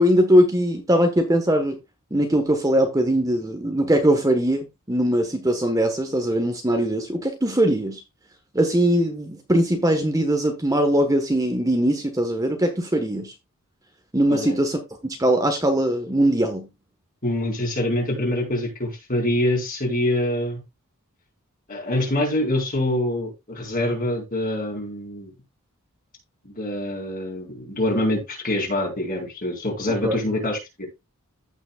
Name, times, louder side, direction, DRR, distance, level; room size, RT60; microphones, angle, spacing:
voice 1, 0.0-1.8 2.1-8.0 8.5-13.3 14.1-16.7 30.0-30.2, right 1 dB, 15° right, 1.2 m, -21 dB
voice 2, 17.2-20.6 21.7-25.3 26.4-30.9, left 1 dB, 40° left, 4.2 m, -25 dB
15.0 x 6.1 x 2.3 m
head